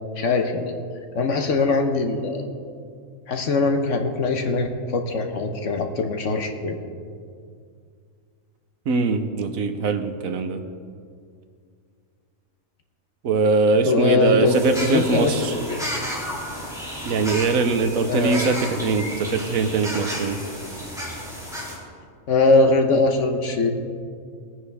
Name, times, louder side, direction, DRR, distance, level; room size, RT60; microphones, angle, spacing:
voice 1, 0.2-0.7 1.1-2.5 3.3-6.8 13.8-14.5 14.8-15.8 18.1-18.4 22.3-23.7, left 3 dB, 65° left, 5 dB, 1.3 m, -21 dB
voice 2, 8.9-10.6 13.2-15.5 17.0-20.4, right 4 dB, 75° right, 8 dB, 1.2 m, -22 dB
sound 1, 14.4-21.8, equal, ahead, 3.1 m, -32 dB
19.5 x 9.4 x 3.5 m, 2.2 s
omnidirectional pair, 1.4 m